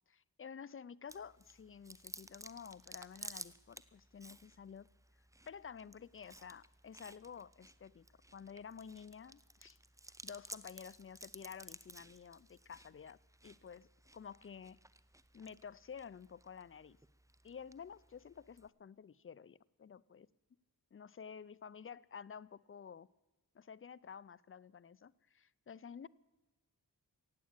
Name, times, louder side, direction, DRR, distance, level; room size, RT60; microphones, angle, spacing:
voice 1, 0.1-4.9 5.5-8.1 8.3-9.8 10.2-13.2 13.4-13.9 14.1-14.8 15.3-17.0 17.4-20.3 20.9-23.1 23.5-26.1, left 7 dB, 35° left, 20 dB, 0.4 m, -51 dB
Chewing mastication, 1.1-18.7, right 1 dB, 10° right, 0.6 m, -56 dB
16.0 x 8.5 x 8.7 m, 1.2 s
wide cardioid pair, 55°, 37 cm